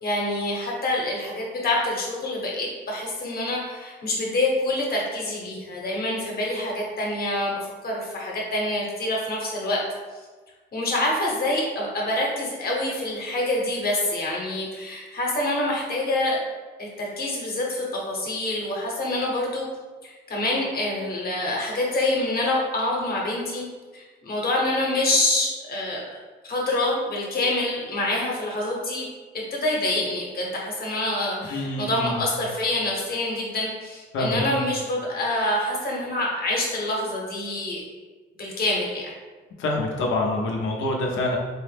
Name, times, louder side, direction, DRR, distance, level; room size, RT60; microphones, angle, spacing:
voice 1, 0.0-9.8 10.7-16.4 16.8-19.7 20.0-23.6 23.9-29.1 29.3-37.8 38.4-39.1, left 1 dB, 50° left, -2 dB, 1.1 m, -26 dB
voice 2, 31.5-32.2 34.1-34.4 39.6-41.4, left 2 dB, 80° left, 0 dB, 0.8 m, -26 dB
4.6 x 2.0 x 3.3 m, 1.3 s
cardioid pair, 90°, 20 cm